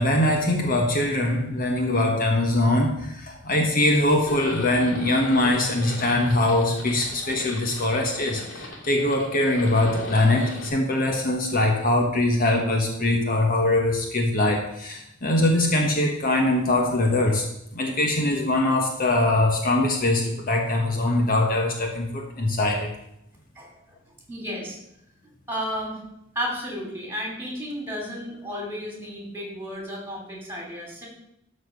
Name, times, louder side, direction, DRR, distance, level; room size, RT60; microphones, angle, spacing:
voice 1, 0.0-17.4 17.7-22.9, left 1 dB, 45° left, 2 dB, 1.3 m, -22 dB
Livestock farm animals working animals, 4.3-10.7, left 1 dB, 75° left, 2.6 m, -38 dB
voice 2, 24.3-24.8 25.5-26.0 26.3-31.1, equal, 10° right, -1 dB, 3.1 m, -32 dB
12.5 x 4.3 x 6.7 m, 0.79 s
head